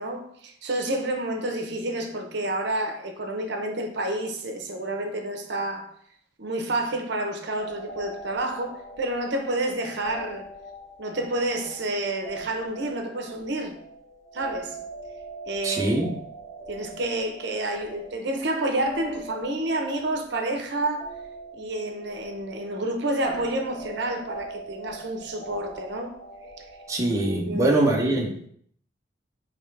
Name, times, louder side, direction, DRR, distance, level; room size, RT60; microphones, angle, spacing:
voice 1, 0.0-5.9 6.4-10.5 11.0-13.8 14.3-14.8 15.5-15.9 16.7-21.1 21.5-26.1 26.6-26.7 27.5-27.8, right 1 dB, 60° right, 0.7 m, -29 dB
sound 1, 7.5-27.3, right 2 dB, 35° left, 1.0 m, -42 dB
voice 2, 15.6-16.1 26.9-28.5, right 2 dB, 15° right, 0.6 m, -23 dB
5.3 x 2.9 x 3.2 m
head